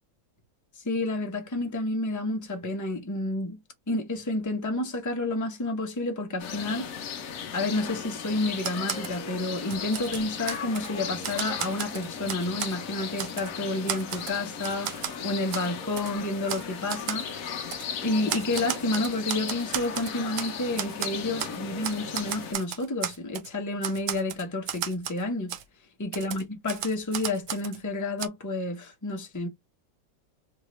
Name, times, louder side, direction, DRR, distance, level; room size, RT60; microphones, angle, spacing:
voice 1, 0.8-3.6 3.9-6.9 7.5-17.6 18.0-25.5 26.0-29.5, left 2 dB, 20° left, 0.4 m, -30 dB
sound 1, 6.4-22.5, left 6 dB, 60° left, 0.9 m, -36 dB
Typewriter, 8.6-9.2 9.6-10.9 11.2-12.8 13.2-13.5 13.9-15.2 15.5-15.7 16.0-16.1 16.5-16.6 16.9-17.2 17.7-17.9 18.3-20.5 20.8-21.6 21.8-23.5 23.8-25.2 25.5-25.6 26.1-27.8 28.2-28.3, right 10 dB, 75° right, 0.7 m, -34 dB
3.8 x 2.5 x 3.0 m
omnidirectional pair, 2.0 m